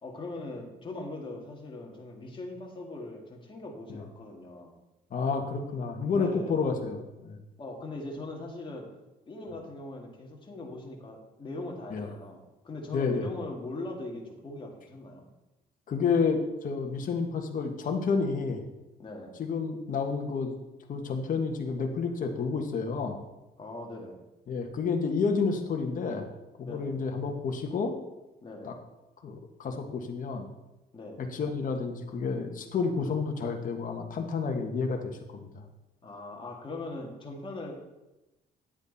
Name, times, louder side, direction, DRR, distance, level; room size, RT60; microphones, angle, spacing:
voice 1, 0.0-4.7 6.2-6.5 7.6-8.8 9.3-15.3 19.0-19.3 23.6-24.2 26.6-26.9 28.4-28.7 30.9-31.3 36.0-37.9, left 2 dB, 30° left, 0 dB, 2.1 m, -40 dB
voice 2, 5.1-7.4 11.9-12.1 12.9-13.3 15.9-18.6 19.4-20.5 20.9-23.2 24.5-26.3 26.6-27.9 28.6-28.7 29.2-30.5 31.2-35.6, left 5 dB, 55° left, 3 dB, 1.4 m, -30 dB
10.0 x 8.1 x 4.1 m, 0.99 s
cardioid pair, 105°, 17 cm